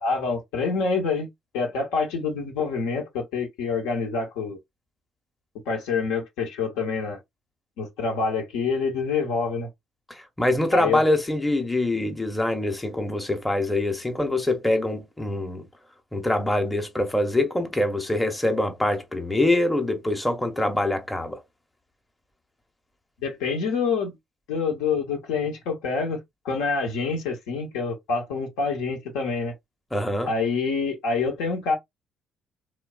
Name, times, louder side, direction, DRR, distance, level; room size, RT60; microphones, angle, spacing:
voice 1, 0.0-1.3 1.5-4.6 5.7-7.2 7.8-9.7 10.7-11.0 23.2-24.1 24.5-26.2 26.4-29.5 30.2-31.7, left 4 dB, 70° left, 0.8 m, -26 dB
voice 2, 10.1-15.7 16.1-21.4 29.9-30.3, left 1 dB, 10° left, 0.7 m, -24 dB
3.1 x 2.2 x 2.2 m
figure-of-eight pair, 45°, 0 cm